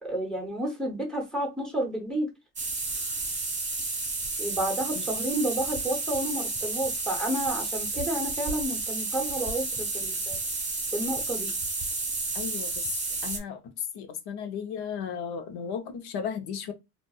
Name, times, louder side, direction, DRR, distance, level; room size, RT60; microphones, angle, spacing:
voice 1, 0.0-2.3 4.4-10.4 10.9-11.5, right 1 dB, ahead, 0.7 m, -31 dB
sound 1, 2.6-13.4, right 3 dB, 20° right, 1.1 m, -31 dB
voice 2, 12.3-12.8 13.2-13.6 13.9-16.7, left 7 dB, 80° left, 0.8 m, -35 dB
4.0 x 2.4 x 2.3 m
cardioid pair, 180°, 38 cm